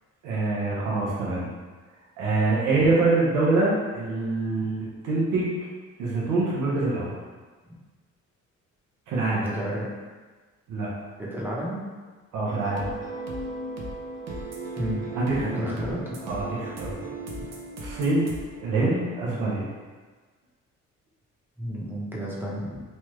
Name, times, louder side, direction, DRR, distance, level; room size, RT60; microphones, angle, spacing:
voice 1, 0.2-1.5 2.2-5.5 6.0-7.1 9.1-9.5 10.7-10.9 12.3-12.9 15.2-15.6 16.2-17.1 17.8-18.3 18.6-19.7, right 3 dB, 90° right, -6 dB, 0.8 m, -25 dB
voice 2, 9.4-9.9 11.2-11.8 14.8-15.1 15.4-16.2 21.6-22.8, equal, 5° right, -6 dB, 0.8 m, -31 dB
sound 1, 12.5-19.8, right 2 dB, 60° right, 0.6 m, -37 dB
3.2 x 2.3 x 3.1 m, 1.4 s
cardioid pair, 90°, 30 cm